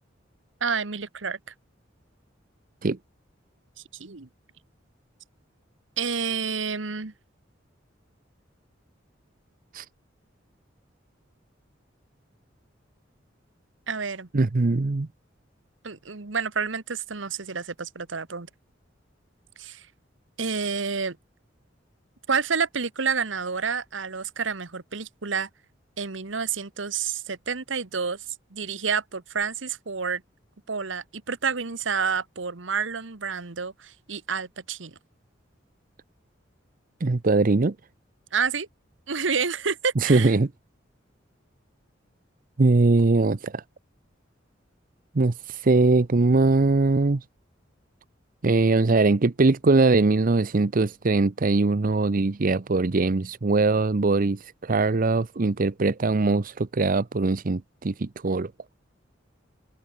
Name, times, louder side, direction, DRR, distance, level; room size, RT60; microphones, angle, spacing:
voice 1, 0.6-1.4 3.9-4.3 6.0-7.1 13.9-14.3 15.8-18.5 19.6-19.9 20.4-21.2 22.3-25.5 26.0-28.2 28.5-30.2 30.7-35.0 38.3-38.7 39.1-40.3, right 5 dB, 85° right, 1.4 m, -29 dB
voice 2, 14.3-15.1 37.0-37.7 40.0-40.5 42.6-43.6 45.1-47.2 48.4-58.5, right 3 dB, 50° right, 0.7 m, -21 dB
head